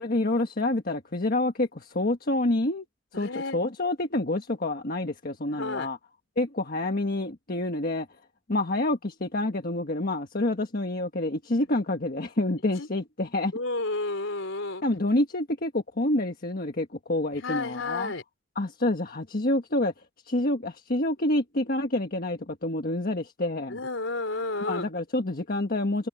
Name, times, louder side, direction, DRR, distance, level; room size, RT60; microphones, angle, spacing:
voice 1, 0.0-2.8 3.2-6.0 6.4-8.1 8.5-13.5 14.8-18.1 18.6-19.9 20.2-23.8 24.6-26.1, left 1 dB, 45° left, 1.5 m, -27 dB
voice 2, 3.1-3.6 5.5-5.9 12.8-12.9 13.5-14.8 17.4-18.2 23.7-24.9, left 3 dB, 70° left, 4.5 m, -31 dB
head